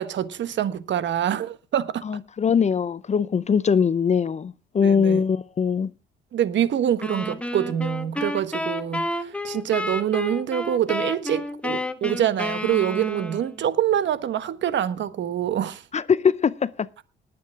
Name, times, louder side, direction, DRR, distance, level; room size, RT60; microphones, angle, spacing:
voice 1, 0.0-2.0 4.8-5.2 6.3-15.8, right 10 dB, 65° right, 1.3 m, -25 dB
voice 2, 2.1-5.9 15.9-16.9, left 6 dB, 35° left, 0.6 m, -22 dB
sound 1, 7.0-13.6, left 1 dB, 5° left, 1.7 m, -30 dB
20.0 x 8.5 x 3.6 m
cardioid pair, 90°, 20 cm